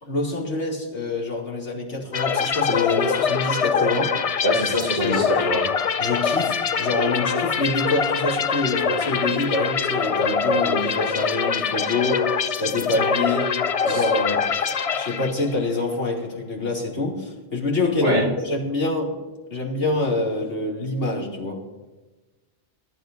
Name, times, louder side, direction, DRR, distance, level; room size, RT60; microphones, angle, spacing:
voice 1, 0.0-4.1 5.0-5.2 6.0-12.2 12.6-13.5 13.8-14.6 14.9-19.1 19.5-21.6, left 2 dB, 90° left, -2 dB, 2.9 m, -26 dB
sound 1, 2.1-15.7, left 6 dB, 45° left, 0.5 m, -24 dB
voice 2, 4.4-5.7 13.9-14.0 18.0-18.2, equal, 80° right, -2 dB, 4.6 m, -23 dB
21.5 x 12.0 x 2.6 m, 1.2 s
omnidirectional pair, 1.2 m